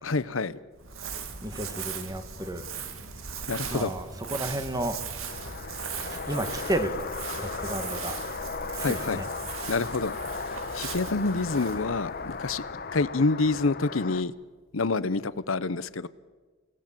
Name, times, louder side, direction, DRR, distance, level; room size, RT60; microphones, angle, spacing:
voice 1, 0.0-0.6 3.5-3.9 8.8-9.2 9.7-10.1 10.5-12.6 12.9-14.3 14.7-16.1, left 3 dB, 75° left, 16 dB, 0.8 m, -27 dB
Crumpling crinkling, 0.8-13.2, right 6 dB, 80° right, 2.2 m, -39 dB
voice 2, 1.4-2.6 3.7-5.0 6.0-7.0 7.4-8.2 8.7-9.3, right 1 dB, 20° right, 8 dB, 1.7 m, -32 dB
sound 1, 5.3-14.2, left 4 dB, 45° left, 0.9 m, -36 dB
29.0 x 18.0 x 7.5 m, 1.4 s
head